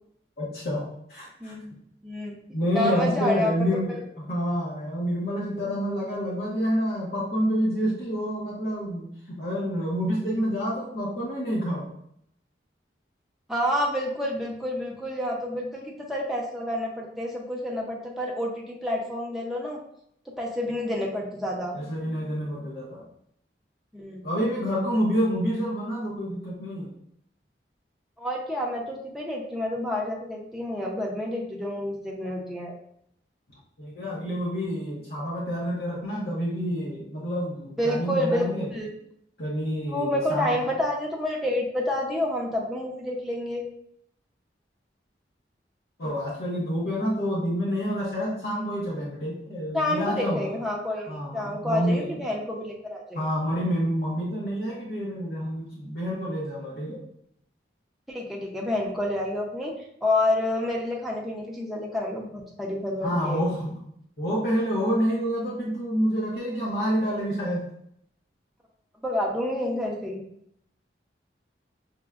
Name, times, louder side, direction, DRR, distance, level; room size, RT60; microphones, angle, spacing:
voice 1, 0.4-1.5 2.5-11.9 21.7-23.0 24.2-26.9 33.8-38.7 39.4-40.6 46.0-50.5 51.1-52.2 53.1-57.0 63.0-63.8 64.2-67.7, equal, 55° left, -5 dB, 0.8 m, -28 dB
voice 2, 1.4-1.8 2.0-2.4 2.7-4.0 13.5-19.8 20.4-21.8 23.9-24.3 28.2-32.7 37.8-38.9 39.9-43.6 49.7-53.3 58.1-59.7 60.0-63.5 69.0-70.2, left 1 dB, ahead, -3 dB, 0.5 m, -29 dB
5.9 x 2.1 x 2.4 m, 0.73 s
head